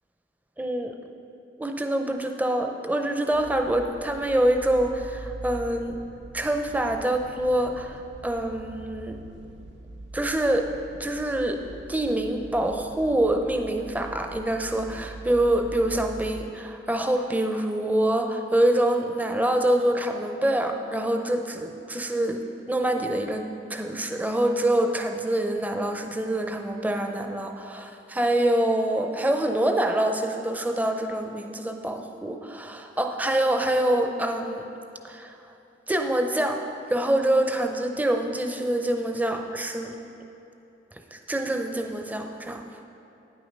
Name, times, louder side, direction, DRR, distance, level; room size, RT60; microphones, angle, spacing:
voice 1, 0.6-1.0 1.6-6.0 6.3-9.2 10.1-10.7 11.0-11.6 11.9-22.4 22.7-34.7 35.0-35.4 35.9-36.6 36.9-40.0 40.9-42.6, right 1 dB, 10° right, 5 dB, 0.5 m, -25 dB
sound 1, 3.3-16.5, right 2 dB, 80° right, 0.5 m, -43 dB
9.4 x 6.2 x 5.2 m, 2.9 s
head